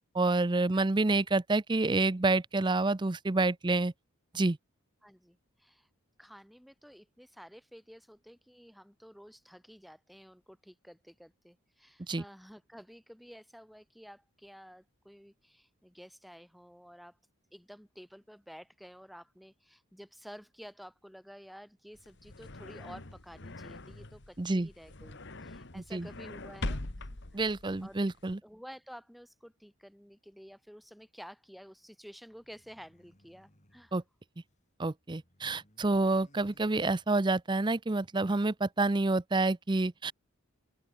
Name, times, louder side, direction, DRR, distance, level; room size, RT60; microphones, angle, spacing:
voice 1, 0.1-3.9 4.3-4.6 12.1-12.2 24.4-24.7 25.8-26.1 27.3-28.4 33.9-34.0 34.8-40.1, right 2 dB, 20° right, 0.5 m, -28 dB
voice 2, 5.0-5.9 6.2-17.2 17.5-27.1 27.3-27.4 27.8-28.0 28.4-33.9, equal, ahead, 5.3 m, -52 dB
sound 1, 21.9-28.3, left 2 dB, 50° left, 1.7 m, -42 dB
sound 2, 32.3-34.7 35.0-37.5, equal, 30° left, 7.8 m, -65 dB
open air
head